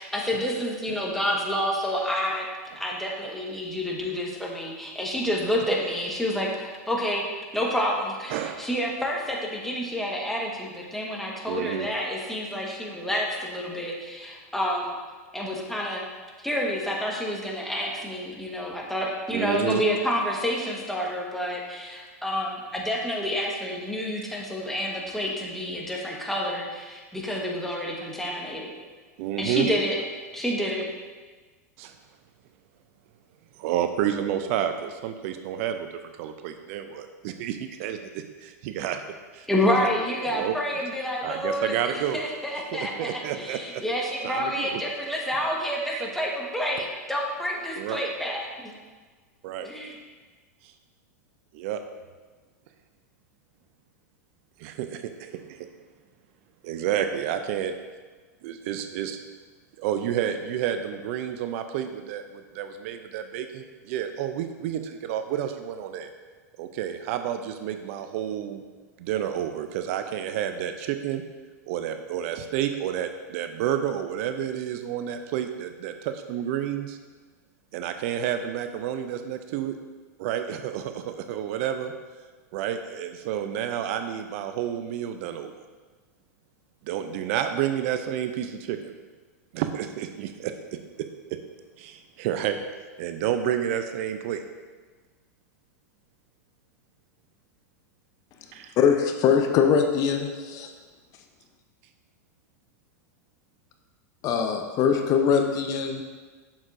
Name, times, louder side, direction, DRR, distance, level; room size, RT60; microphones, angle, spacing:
voice 1, 0.0-2.4 2.8-7.2 7.5-14.9 15.3-16.0 16.4-28.7 29.4-30.0 30.3-30.8 39.5-48.7 49.6-49.9, equal, 5° left, -2 dB, 1.3 m, -29 dB
voice 2, 8.3-8.7 11.5-11.9 19.3-19.8 29.2-29.7 31.8-31.9 33.6-39.0 39.3-39.5 40.3-40.6 41.2-42.2 42.7-43.8 44.2-44.8 46.0-46.1 47.8-48.0 49.4-49.7 50.6-50.7 51.5-51.8 54.6-55.7 56.6-57.7 58.4-59.2 59.8-66.1 66.6-68.6 69.0-71.2 71.7-77.0 77.7-79.8 80.2-81.9 82.5-85.5 86.8-88.9 89.5-91.4 91.8-92.6 93.0-94.4 98.5-98.7, right 10 dB, 55° right, 8 dB, 0.5 m, -30 dB
voice 3, 98.8-100.7 104.2-106.0, left 7 dB, 40° left, 5 dB, 0.6 m, -22 dB
7.1 x 6.4 x 2.6 m, 1.4 s
hypercardioid pair, 105°, 9 cm